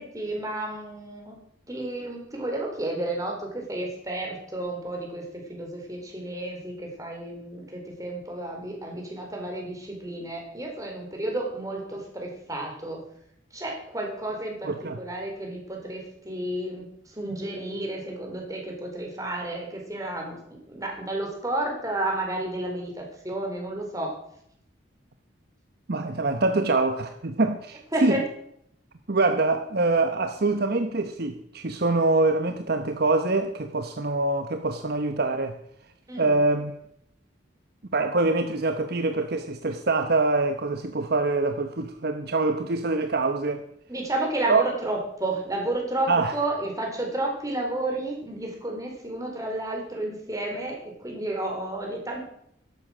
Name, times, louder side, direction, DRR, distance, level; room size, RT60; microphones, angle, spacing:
voice 1, 0.0-1.4 1.7-13.0 13.5-20.4 20.7-24.2 27.9-28.2 36.1-36.3 43.9-52.2, right 1 dB, 15° right, 4.2 m, -31 dB
voice 2, 14.6-15.0 25.9-28.2 29.1-35.6 36.2-36.7 37.9-43.6 44.5-44.6 46.1-46.3, right 3 dB, 55° right, 0.9 m, -24 dB
13.5 x 11.5 x 6.3 m
head